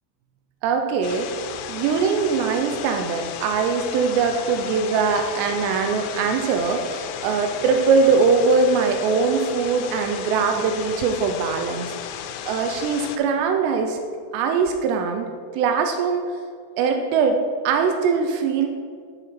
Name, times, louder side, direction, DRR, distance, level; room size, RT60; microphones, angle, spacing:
voice 1, 0.6-1.3 1.7-14.0 14.3-15.3 15.5-16.3 16.8-18.7, right 5 dB, 90° right, 5 dB, 2.4 m, -22 dB
sound 1, 1.0-13.2, left 9 dB, 85° left, 3.0 m, -34 dB
9.9 x 5.1 x 4.2 m, 2.1 s
omnidirectional pair, 5.5 m